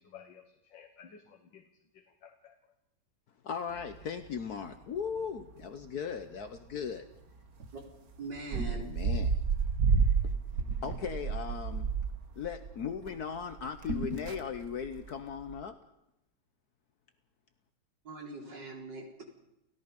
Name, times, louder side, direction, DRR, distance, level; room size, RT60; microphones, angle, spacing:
voice 1, 0.0-1.6 1.9-2.6, left 7 dB, 80° left, 5 dB, 2.1 m, -54 dB
voice 2, 3.4-7.1 8.6-9.4 10.8-11.9 12.3-15.8, left 7 dB, 60° left, 8 dB, 1.5 m, -38 dB
sound 1, 3.7-4.4 4.7-4.8 5.1-5.6 6.2-6.4 6.7-6.8 7.6-7.8 8.3-13.1 13.4-15.1 15.4-15.6, right 5 dB, 55° right, 1.8 m, -31 dB
voice 3, 8.2-8.9 18.1-19.2, right 2 dB, 75° right, -1 dB, 5.2 m, -42 dB
29.5 x 16.5 x 5.3 m, 0.85 s
omnidirectional pair, 1.9 m